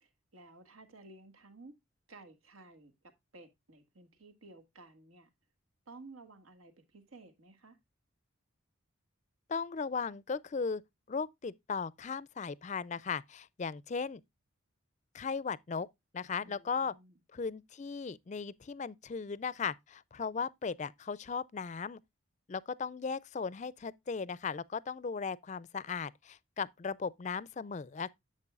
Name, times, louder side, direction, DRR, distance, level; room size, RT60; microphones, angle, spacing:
voice 1, 0.0-1.8 2.1-2.9 3.3-5.3 5.9-7.8 16.4-17.2, right 2 dB, 90° right, 1.9 m, -55 dB
voice 2, 9.5-10.8 11.1-14.2 15.1-15.9 16.1-16.9 17.3-22.0 22.5-28.1, left 5 dB, 35° left, 0.4 m, -37 dB
10.5 x 7.6 x 2.4 m
head